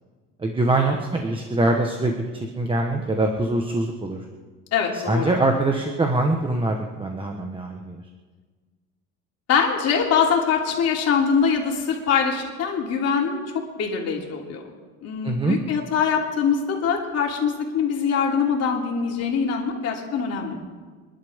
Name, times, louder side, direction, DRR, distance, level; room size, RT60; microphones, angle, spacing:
voice 1, 0.4-4.2 4.9-8.0 15.2-15.6, right 2 dB, 15° right, 2 dB, 1.2 m, -23 dB
voice 2, 4.7-5.3 9.5-14.6 15.0-20.6, left 6 dB, 50° left, 0 dB, 3.1 m, -23 dB
27.0 x 11.5 x 3.6 m, 1.5 s
cardioid pair, 130°, 32 cm